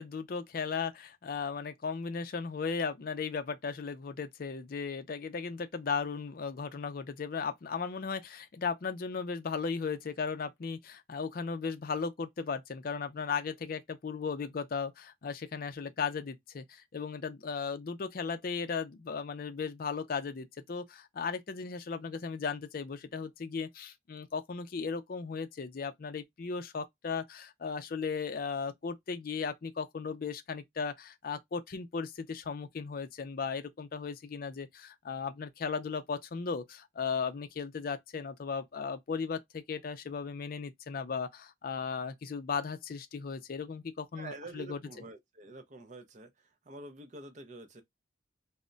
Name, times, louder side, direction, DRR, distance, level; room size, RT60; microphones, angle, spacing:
voice 1, 0.0-44.8, left 5 dB, 50° left, 0.4 m, -36 dB
voice 2, 44.1-46.3 46.7-47.8, right 2 dB, 40° right, 0.5 m, -47 dB
2.2 x 2.1 x 3.7 m
head